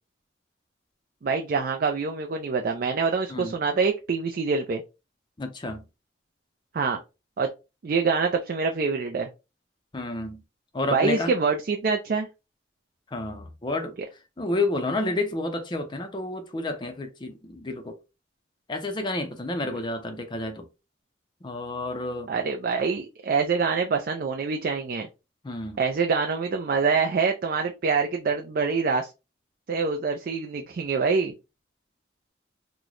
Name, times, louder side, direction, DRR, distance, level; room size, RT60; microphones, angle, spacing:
voice 1, 1.2-4.8 6.7-7.0 7.4-7.5 7.8-9.3 10.9-12.3 19.7-19.8 22.3-25.1 25.8-29.1 29.7-31.3, right 5 dB, 50° right, 0.4 m, -25 dB
voice 2, 5.4-5.8 9.9-10.4 10.7-11.3 13.1-13.9 14.4-17.9 18.7-20.6 21.4-22.3 25.4-25.8, left 2 dB, 25° left, 0.4 m, -30 dB
3.0 x 2.1 x 3.7 m
head